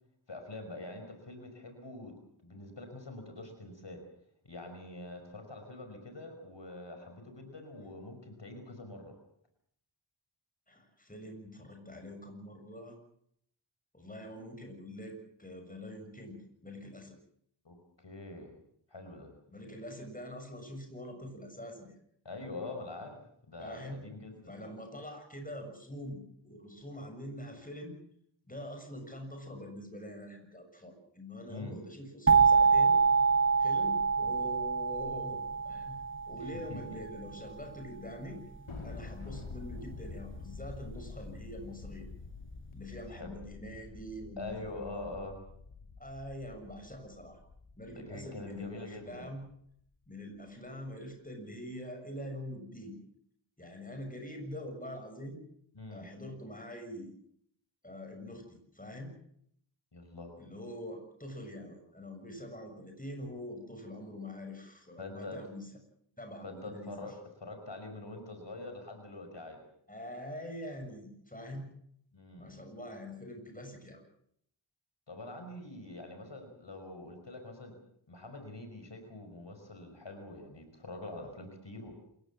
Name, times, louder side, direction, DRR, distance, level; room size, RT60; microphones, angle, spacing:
voice 1, 0.3-2.2 2.4-4.0 4.4-9.2 17.6-18.5 18.9-19.3 22.2-23.2 23.5-24.8 31.5-31.8 36.4-37.0 43.1-43.3 44.4-45.4 47.9-49.2 55.7-56.0 59.9-60.3 65.0-65.4 66.4-69.6 72.1-72.6 75.1-77.8 78.1-81.9, left 2 dB, 60° left, 5 dB, 5.5 m, -45 dB
voice 2, 10.7-13.0 13.9-17.2 19.5-22.0 23.6-24.1 24.5-28.0 28.5-33.0 33.6-36.0 36.3-38.4 38.8-42.1 42.7-45.2 46.0-47.4 47.8-49.4 50.1-53.0 53.6-55.4 55.9-57.1 57.8-59.1 60.4-65.6 66.2-66.9 69.9-71.7 72.4-74.0, left 1 dB, 15° left, 4 dB, 6.8 m, -44 dB
sound 1, 32.3-37.0, right 5 dB, 25° right, 1.1 m, -26 dB
Thunder, 38.7-49.3, left 4 dB, 80° left, 2.9 m, -47 dB
28.0 x 16.5 x 7.5 m, 0.69 s
wide cardioid pair, 75°, 48 cm